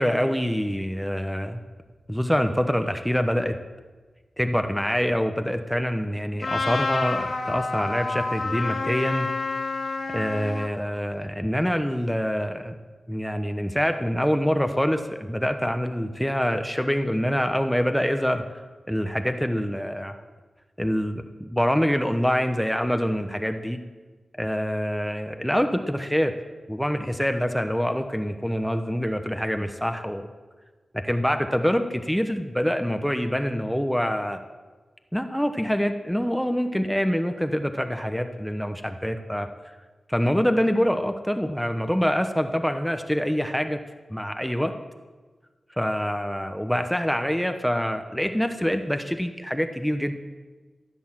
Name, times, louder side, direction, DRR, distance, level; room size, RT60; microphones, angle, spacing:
voice 1, 0.0-1.6 2.1-3.5 4.4-9.3 10.1-12.7 13.1-18.4 18.9-20.1 20.8-23.8 24.4-26.3 26.7-30.3 30.9-34.4 35.1-39.5 40.1-43.8 44.1-44.7 45.8-50.1, equal, 5° left, 7 dB, 1.0 m, -25 dB
Trumpet, 6.4-10.7, left 3 dB, 75° left, 3.1 m, -29 dB
15.0 x 11.0 x 7.5 m, 1.3 s
wide cardioid pair, 85°, 0 cm